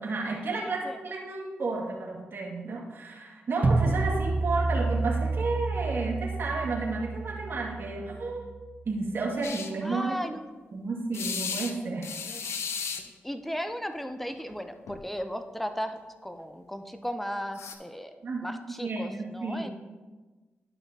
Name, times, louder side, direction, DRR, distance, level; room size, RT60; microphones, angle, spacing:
voice 1, 0.0-8.5 8.9-10.3 10.7-12.1 18.2-19.7, right 3 dB, 55° right, -3 dB, 2.0 m, -32 dB
voice 2, 0.6-1.0 9.8-10.5 12.3-12.4 13.2-18.1 18.4-19.7, equal, 5° left, 8 dB, 0.7 m, -36 dB
sound 1, 3.6-8.7, right 3 dB, 35° right, 0.6 m, -29 dB
sound 2, 9.4-9.7 11.1-11.7 12.0-13.0 14.4-14.6 14.9-15.0 17.5-17.7, left 6 dB, 80° left, 0.7 m, -34 dB
11.5 x 5.7 x 2.8 m, 1.3 s
cardioid pair, 55°, 4 cm